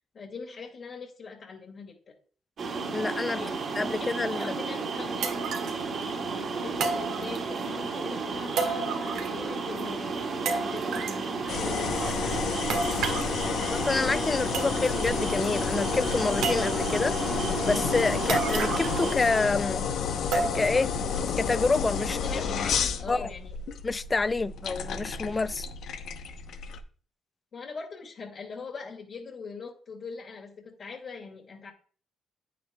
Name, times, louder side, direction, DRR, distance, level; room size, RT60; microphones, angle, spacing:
voice 1, 0.1-2.1 3.3-3.6 4.3-5.2 6.2-12.8 22.0-23.6 27.5-31.7, left 5 dB, 55° left, 1.8 m, -42 dB
sound 1, 2.6-19.2, right 4 dB, 60° right, 2.3 m, -33 dB
voice 2, 2.9-3.4 3.8-4.5 13.5-17.2 17.7-19.9 20.3-20.9 21.4-22.2 22.5-22.7 23.1-23.3 23.8-25.7, left 3 dB, 25° left, 0.4 m, -28 dB
sound 2, 4.4-4.5 5.2-5.8 6.8-7.7 8.6-9.5 9.8-9.9 10.5-11.2 12.7-13.3 14.1-14.2 14.5-15.1 15.4-15.5 16.4-17.0 18.3-19.1 19.4-19.5 20.3-20.8 21.3-21.4 22.0-22.1, right 4 dB, 85° right, 1.5 m, -31 dB
sound 3, 11.5-26.8, left 6 dB, 70° left, 0.8 m, -31 dB
9.3 x 8.3 x 2.3 m
cardioid pair, 90°, 0 cm